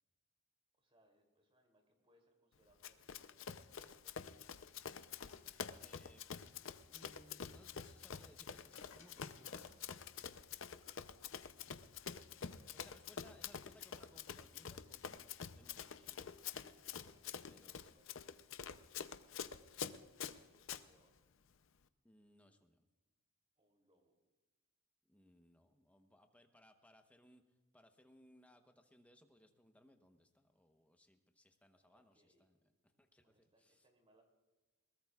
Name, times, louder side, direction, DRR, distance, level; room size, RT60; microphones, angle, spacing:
voice 1, 0.7-4.3 12.0-13.2 15.9-16.2 16.7-17.2 17.9-18.2 19.0-21.3 23.6-24.2 31.7-32.4 33.2-34.2, right 1 dB, 30° right, 3 dB, 3.0 m, -75 dB
Run, 2.8-20.8, left 7 dB, 65° left, 0.6 m, -48 dB
sound 1, 3.6-10.7 11.2-11.3, left 5 dB, 85° left, 1.6 m, -64 dB
voice 2, 5.8-6.2 6.9-9.8 12.4-16.3 16.6-16.7 17.5-18.0 22.0-22.9 25.1-27.4 27.7-32.6 32.8-33.9, left 1 dB, 5° left, 5 dB, 1.0 m, -66 dB
sound 2, 10.7-11.1 13.8-14.2, right 5 dB, 75° right, 1.6 m, -72 dB
21.5 x 19.5 x 2.4 m, 1.2 s
head